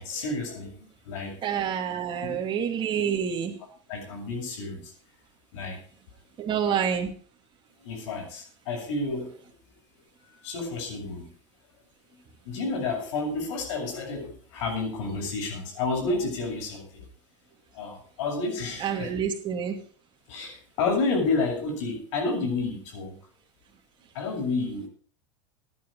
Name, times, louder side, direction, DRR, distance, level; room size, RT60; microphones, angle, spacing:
voice 1, 0.0-1.4 2.2-2.4 3.1-3.2 3.9-4.9 5.5-5.8 7.8-9.4 10.2-11.3 12.1-12.2 12.5-17.1 17.7-19.2 20.3-23.2 24.1-24.9, left 3 dB, 75° left, 2 dB, 6.8 m, -30 dB
voice 2, 1.4-3.6 6.4-7.1 18.8-19.8, right 8 dB, 30° right, 2 dB, 2.6 m, -28 dB
15.5 x 10.0 x 4.8 m, 0.43 s
supercardioid pair, 135°, 15 cm